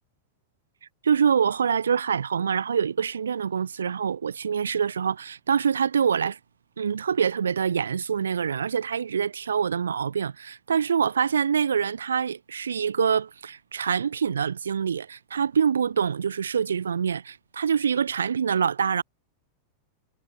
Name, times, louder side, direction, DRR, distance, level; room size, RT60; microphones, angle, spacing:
voice 1, 1.0-6.4 6.8-19.0, right 7 dB, 70° right, 0.9 m, -25 dB
figure-of-eight pair, 90°, 0 cm